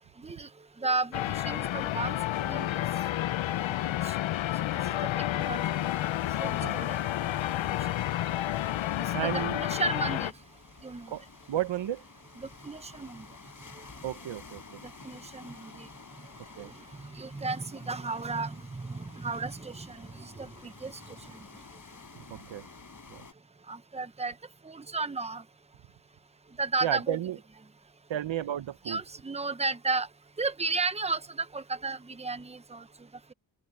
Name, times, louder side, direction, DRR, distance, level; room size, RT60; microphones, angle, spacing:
voice 1, 0.2-0.5 0.8-2.8 3.8-4.2 4.9-5.9 6.4-7.0 8.7-10.3 10.8-11.1 12.4-13.3 13.7-13.9 14.8-15.9 16.6-16.7 17.0-21.4 23.7-24.3 24.6-25.4 26.6-27.2 28.9-30.1 30.4-32.9, right 3 dB, 15° right, 1.0 m, -34 dB
sound 1, 1.1-10.3, left 13 dB, 80° left, 0.6 m, -30 dB
sound 2, 5.4-23.3, left 5 dB, 40° left, 6.2 m, -51 dB
voice 2, 6.4-6.7 9.1-9.6 11.1-11.2 11.5-12.0 14.0-14.8 16.6-16.7 22.1-22.7 23.1-23.3 26.8-27.4 28.1-29.0, right 11 dB, 75° right, 1.0 m, -33 dB
open air
wide cardioid pair, 110°, 46 cm